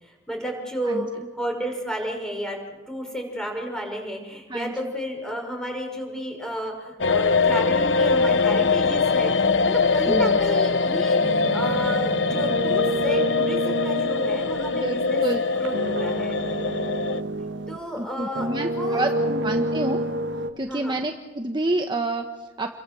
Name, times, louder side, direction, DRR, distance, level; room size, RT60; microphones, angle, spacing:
voice 1, 0.0-2.6 2.9-9.3 9.6-15.2 15.6-16.4 17.7-19.0 20.6-21.0, equal, 5° left, 2 dB, 6.1 m, -32 dB
voice 2, 4.5-4.9 10.1-10.4 14.7-15.4 18.0-20.0 20.6-22.8, right 2 dB, 25° right, 4 dB, 1.4 m, -28 dB
sound 1, 7.0-17.2, left 4 dB, 85° left, 1.0 m, -22 dB
sound 2, 11.2-17.9 18.3-20.5, right 1 dB, 80° right, 1.9 m, -29 dB
30.0 x 23.0 x 7.8 m, 1.2 s
head